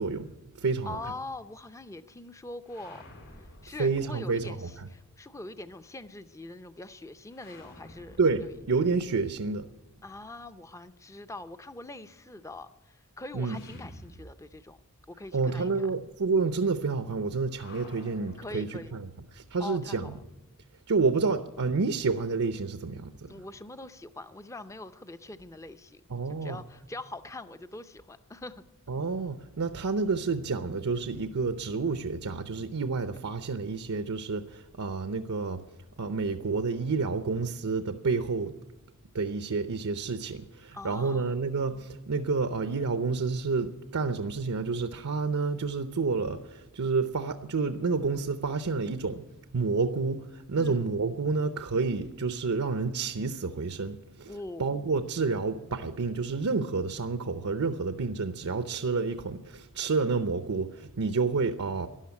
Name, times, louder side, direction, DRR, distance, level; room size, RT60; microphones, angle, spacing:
voice 1, 0.0-1.0 3.8-4.6 8.2-9.7 13.3-13.6 15.3-20.2 20.9-23.3 26.1-26.6 28.9-35.6 36.0-38.5 39.1-49.2 49.5-61.9, right 4 dB, 80° right, 9 dB, 0.7 m, -29 dB
voice 2, 0.9-3.0 3.4-8.5 10.0-14.8 15.1-15.9 18.4-18.9 19.6-20.2 23.3-26.0 26.3-28.6 40.7-41.4 50.6-50.8 54.3-54.7, left 2 dB, 15° left, 10 dB, 0.5 m, -43 dB
sound 1, 2.6-4.6 7.3-10.3 13.5-14.9 15.1-15.2 17.5-19.3, left 1 dB, 65° left, 6.5 m, -52 dB
13.0 x 11.0 x 9.5 m, 1.1 s
head